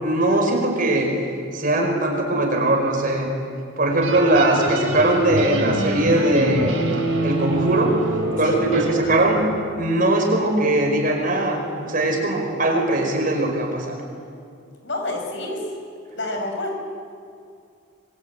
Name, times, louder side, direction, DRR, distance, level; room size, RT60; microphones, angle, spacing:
voice 1, 0.0-1.1 1.5-3.3 3.8-6.7 7.2-8.0 8.4-9.4 9.8-14.0, right 1 dB, 45° right, 2 dB, 5.2 m, -20 dB
sound 1, 4.0-9.6, right 1 dB, 85° right, 4.9 m, -25 dB
voice 2, 8.4-8.8 14.8-15.7 16.1-16.8, left 2 dB, 65° left, 3 dB, 5.7 m, -29 dB
25.5 x 21.5 x 9.2 m, 2.3 s
head